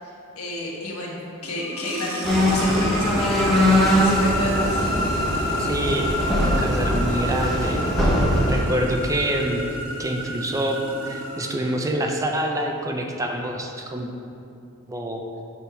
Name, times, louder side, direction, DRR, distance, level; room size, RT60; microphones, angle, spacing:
voice 1, 0.0-3.7 4.0-4.8, left 1 dB, 90° left, -3 dB, 1.4 m, -31 dB
sound 1, 1.4-12.2, equal, 65° right, 1.2 m, -30 dB
sound 2, 2.2-8.6, equal, ahead, 1.0 m, -21 dB
voice 2, 5.6-7.8 8.5-9.6 10.0-10.8 11.0-14.1 14.9-15.2, right 1 dB, 15° right, 3 dB, 0.4 m, -26 dB
6.7 x 3.5 x 5.7 m, 2.7 s
head